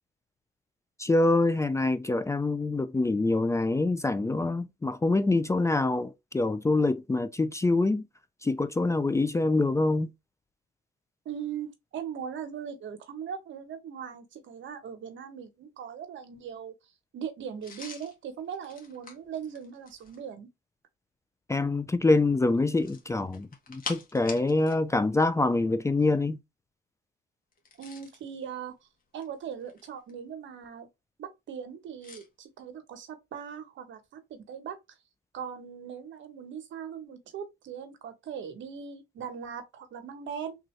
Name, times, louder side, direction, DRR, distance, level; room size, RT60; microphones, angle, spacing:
voice 1, 1.0-8.0 8.4-10.1 21.5-26.4, left 2 dB, 15° left, 0.4 m, -25 dB
voice 2, 11.2-16.7 17.1-20.5 27.8-28.7 29.1-30.9 31.2-35.0 35.3-40.6, right 8 dB, 70° right, 1.0 m, -40 dB
sound 1, 17.6-20.3 22.7-24.8 25.1-25.3 27.5-28.2 29.0-30.1 32.0-32.3, left 4 dB, 45° left, 1.3 m, -44 dB
3.5 x 2.7 x 3.1 m
cardioid pair, 90°, 20 cm